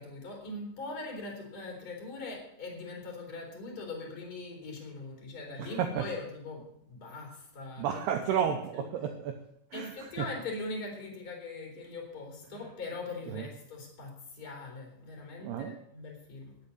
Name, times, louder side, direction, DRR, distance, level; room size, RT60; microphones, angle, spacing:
voice 1, 0.0-8.0 8.7-8.8 9.7-16.6, left 3 dB, 25° left, 0 dB, 3.0 m, -41 dB
voice 2, 5.6-6.1 7.8-9.4 9.7-10.3 13.3-13.5 15.4-15.8, right 8 dB, 90° right, 5 dB, 2.3 m, -32 dB
10.0 x 8.1 x 8.3 m, 0.73 s
omnidirectional pair, 5.6 m